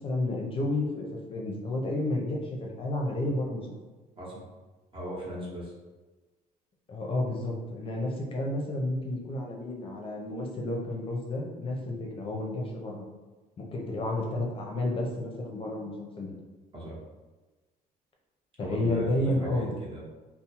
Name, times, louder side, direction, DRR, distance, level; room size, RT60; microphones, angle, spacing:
voice 1, 0.0-3.7 6.9-13.0 13.6-16.4 18.6-19.7, left 1 dB, 30° left, 0 dB, 0.6 m, -31 dB
voice 2, 4.9-5.7 16.7-17.0 18.6-20.0, right 1 dB, 30° right, -5 dB, 1.0 m, -38 dB
2.6 x 2.1 x 2.8 m, 1.2 s
cardioid pair, 110°, 17 cm